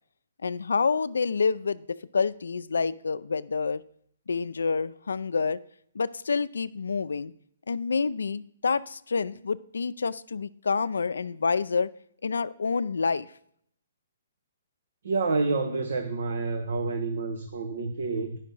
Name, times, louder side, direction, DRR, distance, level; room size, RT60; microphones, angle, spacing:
voice 1, 0.4-3.8 4.3-5.6 6.0-7.3 7.7-11.9 12.2-13.3, left 5 dB, 85° left, 0.4 m, -28 dB
voice 2, 15.0-18.4, right 3 dB, 70° right, 0.9 m, -28 dB
10.0 x 5.7 x 5.4 m
hypercardioid pair, 150°, 0 cm